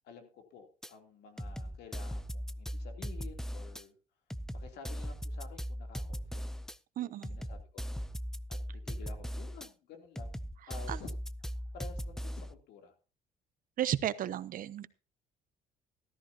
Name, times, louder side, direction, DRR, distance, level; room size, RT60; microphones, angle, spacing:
voice 1, 0.0-3.9 4.5-6.5 7.0-7.9 8.5-10.3 10.7-11.2 11.7-12.9, left 5 dB, 80° left, 4 dB, 3.1 m, -51 dB
sound 1, 0.8-0.9 1.4-3.8 4.3-6.8 7.2-9.7 10.2-12.5, equal, 5° left, 0.5 m, -39 dB
voice 2, 7.0-7.4 10.9-11.0 13.8-14.9, right 11 dB, 55° right, 16 dB, 0.8 m, -33 dB
14.0 x 13.0 x 2.8 m, 0.35 s
cardioid pair, 110°, 17 cm